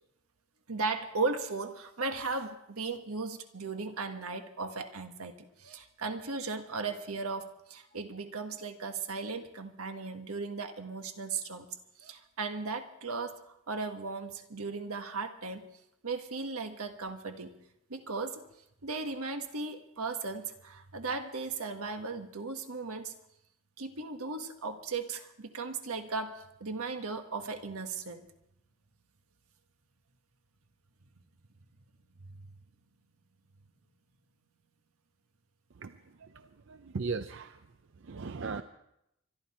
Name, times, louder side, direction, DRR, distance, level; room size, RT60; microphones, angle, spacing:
voice 1, 0.7-11.7 12.0-15.7 16.0-17.5 17.9-18.4 18.8-23.1 23.8-28.2 32.3-32.4, right 4 dB, 85° right, 6 dB, 1.5 m, -36 dB
voice 2, 35.8-37.6 38.0-38.6, right 4 dB, 55° right, 10 dB, 0.5 m, -38 dB
25.0 x 11.5 x 4.3 m, 0.80 s
head